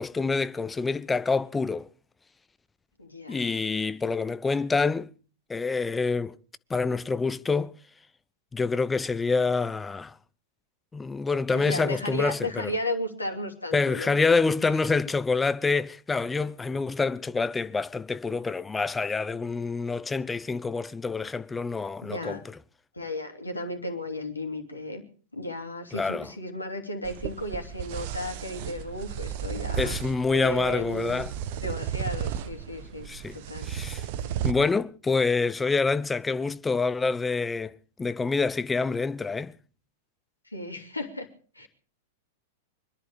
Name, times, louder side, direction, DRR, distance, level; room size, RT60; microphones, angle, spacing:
voice 1, 0.0-1.9 3.3-5.1 5.5-6.4 6.7-7.7 8.5-10.1 10.9-12.7 13.7-22.6 25.9-26.3 29.8-31.3 33.1-33.4 33.6-34.0 34.4-39.5, left 4 dB, 15° left, 0.7 m, -27 dB
voice 2, 3.0-3.6 11.5-14.2 22.0-22.4 22.9-25.0 25.3-30.0 30.3-31.2 31.6-33.1 33.3-33.7 40.4-41.3 41.5-41.7, left 1 dB, 90° left, 2.9 m, -34 dB
sound 1, 27.0-34.5, right 9 dB, 50° right, 1.2 m, -34 dB
24.5 x 11.0 x 5.0 m
figure-of-eight pair, 95°, 0 cm